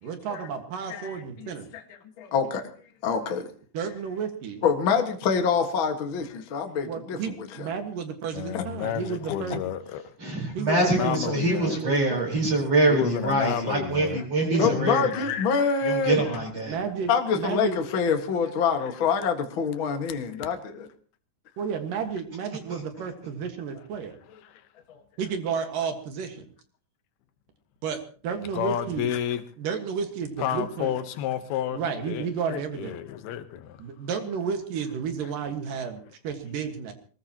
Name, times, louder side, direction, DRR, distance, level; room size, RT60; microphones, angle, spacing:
voice 1, 0.0-1.7 3.7-4.6 6.8-9.6 10.5-12.4 14.5-14.8 16.7-17.8 21.6-24.2 25.2-26.4 27.8-29.1 29.6-31.0 31.7-33.0 33.8-36.9, right 6 dB, 65° right, 3.1 m, -32 dB
voice 2, 0.9-1.8 2.2-2.7 3.0-3.4 4.6-7.7 8.5-8.6 14.6-16.2 17.1-20.9, left 6 dB, 45° left, 1.8 m, -26 dB
voice 3, 8.3-10.0 10.8-11.8 12.9-14.2 14.9-15.5 24.4-24.5 28.5-29.4 30.4-31.8 32.1-33.8, left 10 dB, 85° left, 3.0 m, -31 dB
voice 4, 10.2-15.2 15.8-16.8, right 2 dB, 40° right, 5.4 m, -24 dB
22.5 x 19.5 x 2.9 m
omnidirectional pair, 4.4 m